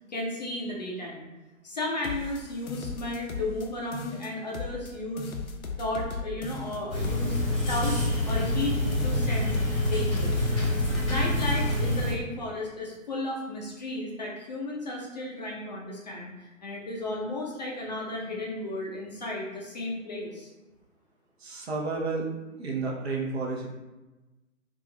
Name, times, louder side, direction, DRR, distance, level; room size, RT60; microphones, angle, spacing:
voice 1, 0.1-1.3 1.6-5.3 5.8-7.4 7.7-10.4 11.0-20.5, left 1 dB, 30° left, -2 dB, 0.5 m, -34 dB
sound 1, 2.0-3.7 3.9-4.9 5.2-8.7 8.9-9.9 10.2-12.0, left 4 dB, 85° left, 0.6 m, -37 dB
sound 2, 6.9-12.1, left 1 dB, 15° left, 1.0 m, -26 dB
voice 2, 21.4-22.3 22.6-23.7, right 3 dB, 50° right, -2 dB, 0.9 m, -31 dB
3.5 x 2.4 x 3.3 m, 1.1 s
figure-of-eight pair, 125°, 41 cm